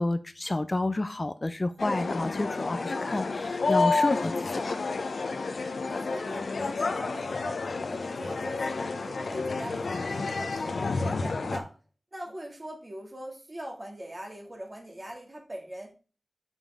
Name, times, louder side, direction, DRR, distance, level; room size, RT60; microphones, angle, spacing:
voice 1, 0.0-4.8, left 2 dB, 30° left, 0.4 m, -30 dB
sound 1, 1.8-11.6, left 3 dB, 80° left, 0.8 m, -30 dB
voice 2, 5.8-11.7 12.1-15.9, right 1 dB, 30° right, 2.1 m, -41 dB
7.1 x 5.5 x 3.5 m
wide cardioid pair, 90°, 0 cm